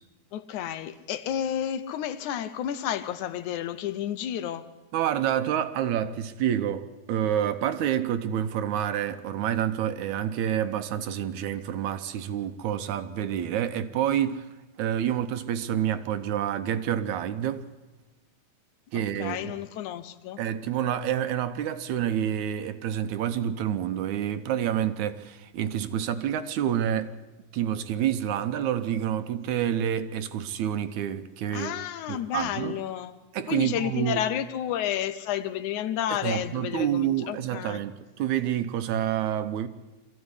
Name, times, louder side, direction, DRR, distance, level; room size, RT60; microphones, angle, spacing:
voice 1, 0.3-4.7 18.9-20.4 31.5-33.2 33.5-37.8, left 10 dB, 75° left, 2.2 m, -31 dB
voice 2, 4.9-14.5 14.8-17.7 18.9-19.5 20.4-27.1 27.5-31.8 32.1-32.8 33.3-34.2 36.1-39.7, right 10 dB, 75° right, 2.2 m, -28 dB
23.5 x 14.5 x 9.8 m
omnidirectional pair, 3.6 m